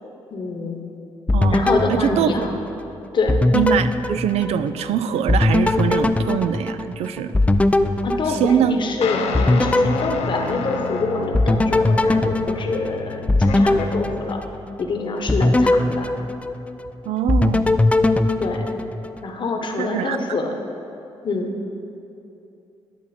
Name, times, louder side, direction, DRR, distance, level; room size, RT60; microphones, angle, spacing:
voice 1, 0.3-0.8 1.5-2.6 3.1-3.4 8.0-14.4 14.8-16.1 18.4-18.7 19.2-20.6 21.2-21.5, left 3 dB, 50° left, 3 dB, 1.0 m, -26 dB
sound 1, 1.3-2.9 3.3-4.9 5.3-8.9 9.3-10.9 11.3-14.8 15.3-16.9 17.3-19.2, left 2 dB, 10° left, 0.3 m, -20 dB
voice 2, 1.3-2.3 3.5-7.3 8.4-8.7 17.1-17.7 19.8-20.2, right 9 dB, 80° right, 11 dB, 0.4 m, -23 dB
sound 2, 9.0-14.2, left 5 dB, 85° left, 0.5 m, -30 dB
11.0 x 5.9 x 4.2 m, 2.8 s
cardioid pair, 85°, 10 cm